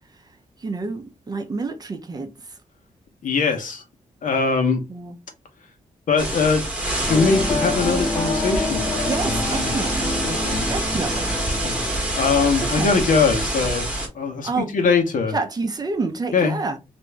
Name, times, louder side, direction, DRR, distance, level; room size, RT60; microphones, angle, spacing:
voice 1, 0.6-2.3 4.9-5.2 9.0-10.2 10.7-11.3 12.6-13.1 14.4-14.7 15.3-16.8, right 3 dB, 30° right, 0.5 m, -28 dB
voice 2, 3.2-3.8 4.2-4.8 6.1-6.6 7.0-9.7 10.2-10.7 11.6-11.8 12.2-13.9 14.1-15.3 16.3-16.6, left 5 dB, 75° left, 1.0 m, -21 dB
sound 1, 6.2-14.1, right 1 dB, 10° right, 1.0 m, -26 dB
sound 2, 7.0-13.3, left 2 dB, 15° left, 0.8 m, -29 dB
2.9 x 2.6 x 3.3 m
wide cardioid pair, 165°, 14 cm